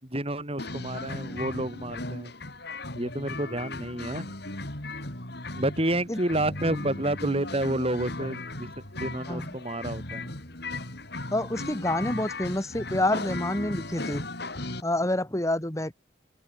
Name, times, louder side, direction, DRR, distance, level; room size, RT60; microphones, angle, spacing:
voice 1, 0.0-2.3 2.9-4.3 5.5-10.3, right 1 dB, 30° right, 5.1 m, -30 dB
sound 1, 0.6-14.8, left 2 dB, 55° left, 4.5 m, -37 dB
voice 2, 11.3-14.3 14.8-15.9, left 1 dB, 15° left, 1.8 m, -28 dB
open air
head